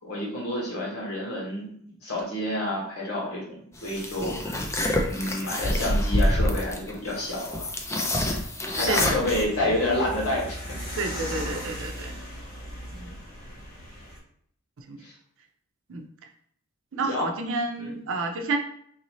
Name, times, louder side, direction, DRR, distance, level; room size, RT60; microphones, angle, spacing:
voice 1, 0.0-1.6 2.0-4.6 4.9-7.7 7.9-8.0 8.7-10.6 11.6-11.7 12.9-13.1 15.0-15.1 17.1-17.3 17.8-17.9, left 1 dB, 85° left, -4 dB, 1.5 m, -29 dB
sound 1, 3.8-9.4, left 1 dB, 15° left, 0.4 m, -27 dB
sound 2, 8.7-14.2, equal, 45° left, 1.1 m, -38 dB
voice 2, 11.0-12.1 14.8-15.0 15.9-16.0 16.9-18.6, right 3 dB, 60° right, 4 dB, 0.6 m, -30 dB
3.9 x 2.7 x 3.0 m, 0.66 s
head